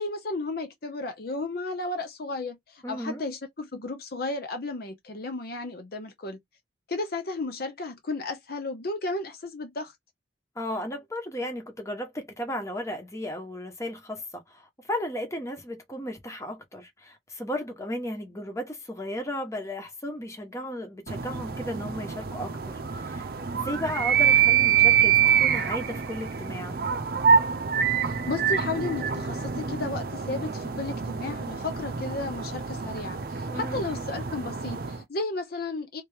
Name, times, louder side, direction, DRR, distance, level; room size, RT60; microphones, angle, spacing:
voice 1, 0.0-6.4 6.9-9.9 26.9-27.0 28.0-36.0, left 2 dB, 55° left, 0.7 m, -33 dB
voice 2, 2.8-3.2 10.5-26.8 33.5-33.8, equal, 15° left, 1.1 m, -35 dB
sound 1, 21.1-35.0, right 7 dB, 55° right, 0.6 m, -26 dB
3.3 x 2.9 x 3.4 m
head